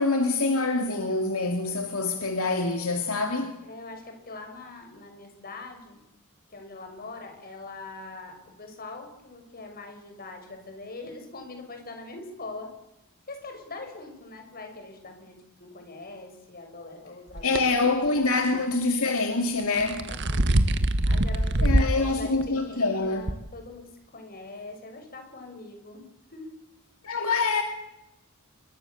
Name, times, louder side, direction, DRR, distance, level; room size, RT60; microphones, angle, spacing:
voice 1, 0.0-3.6 17.4-20.1 21.6-23.2 27.0-27.6, left 3 dB, 70° left, 2.7 m, -25 dB
voice 2, 3.6-6.0 6.5-12.7 13.3-18.3 20.0-20.8 21.0-26.5, left 3 dB, 45° left, 6.3 m, -42 dB
sound 1, 17.4-17.6 19.6-22.0 22.4-22.5 23.3-23.4, right 1 dB, 55° right, 1.8 m, -23 dB
27.5 x 23.0 x 7.2 m
head